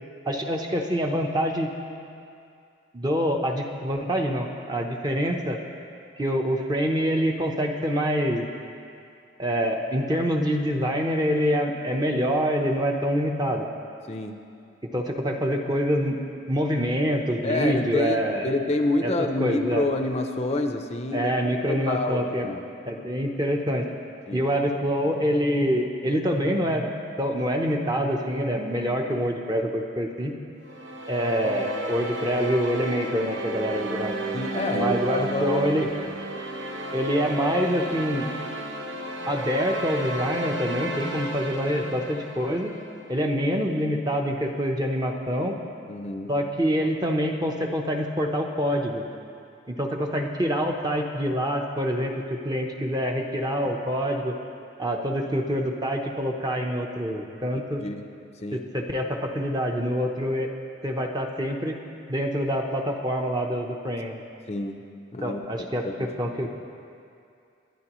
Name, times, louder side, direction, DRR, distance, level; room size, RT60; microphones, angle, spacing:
voice 1, 0.3-1.7 2.9-5.6 6.2-8.5 9.4-13.7 14.9-16.2 16.5-18.6 19.0-19.1 19.4-19.8 21.1-22.5 22.9-23.9 24.3-26.9 27.2-30.3 31.1-34.1 34.7-35.9 36.9-38.3 39.3-42.7 43.1-45.6 46.3-49.0 49.7-54.3 54.8-57.8 58.5-60.5 60.8-61.8 62.1-64.2 65.2-66.5, equal, 20° right, 2 dB, 0.8 m, -26 dB
voice 2, 14.1-14.4 17.4-21.3 21.7-22.6 24.3-24.4 34.3-36.1 45.9-46.3 57.8-58.1 58.4-58.7 64.5-64.8 65.1-66.1, left 2 dB, 30° left, 5 dB, 0.6 m, -28 dB
sound 1, 30.7-43.0, right 2 dB, 75° right, 1.0 m, -33 dB
22.5 x 10.5 x 3.1 m, 2.5 s
head